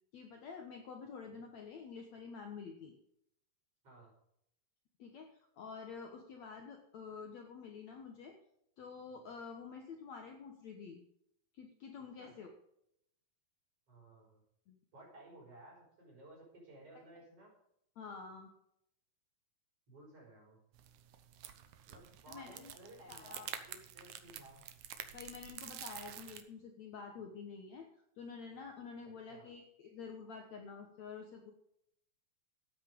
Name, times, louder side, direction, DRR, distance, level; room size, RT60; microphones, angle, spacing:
voice 1, 0.1-2.9 5.0-5.3 5.6-8.4 8.8-11.0 11.5-12.5 14.7-14.8 18.0-18.5 22.3-22.7 23.1-23.5 25.1-27.9 28.2-31.5, left 5 dB, 60° left, 3 dB, 2.1 m, -48 dB
voice 2, 13.9-14.4 14.9-17.5 19.9-20.6 21.9-24.6 29.0-29.5, right 1 dB, 40° right, -3 dB, 6.2 m, -57 dB
sound 1, 20.7-26.4, right 10 dB, 70° right, 2.0 m, -49 dB
13.0 x 9.0 x 5.3 m, 0.75 s
omnidirectional pair, 4.3 m